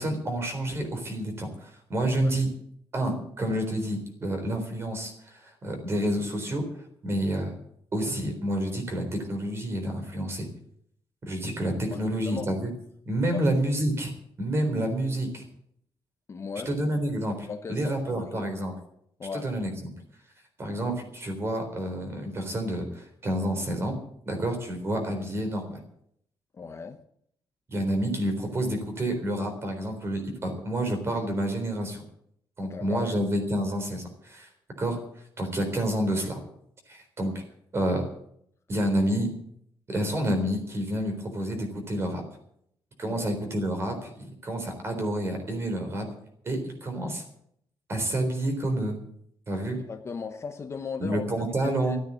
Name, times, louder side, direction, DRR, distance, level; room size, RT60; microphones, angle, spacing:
voice 1, 0.0-2.5 2.9-6.6 7.0-7.5 7.9-10.5 11.3-12.7 13.1-14.1 14.4-15.4 16.7-18.7 19.4-20.0 20.6-24.0 24.3-25.8 27.7-32.0 32.6-34.5 34.8-35.0 35.4-36.4 36.9-37.4 37.7-38.1 38.7-39.3 39.9-42.2 43.0-46.1 46.4-47.2 47.9-49.0 49.5-49.8 51.0-52.0, right 1 dB, 30° right, 5 dB, 3.8 m, -29 dB
voice 2, 2.0-2.3 11.9-12.5 13.3-13.4 16.3-16.7 17.5-18.5 19.2-19.5 26.5-27.0 32.6-33.1 43.0-43.3 49.7-51.3 51.6-52.0, left 5 dB, 30° left, 5 dB, 1.0 m, -37 dB
14.5 x 9.1 x 8.6 m, 0.69 s
wide cardioid pair, 175°, 9 cm